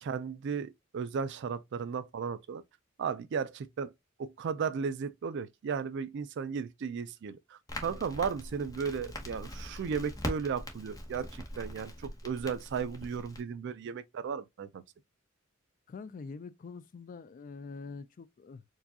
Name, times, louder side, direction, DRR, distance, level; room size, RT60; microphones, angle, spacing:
voice 1, 0.0-2.6 3.0-3.9 4.2-14.8, right 6 dB, 55° right, 0.4 m, -35 dB
Crackle, 7.7-13.4, left 1 dB, 15° left, 0.8 m, -42 dB
voice 2, 15.9-18.6, left 4 dB, 40° left, 0.3 m, -45 dB
4.6 x 2.3 x 2.7 m
head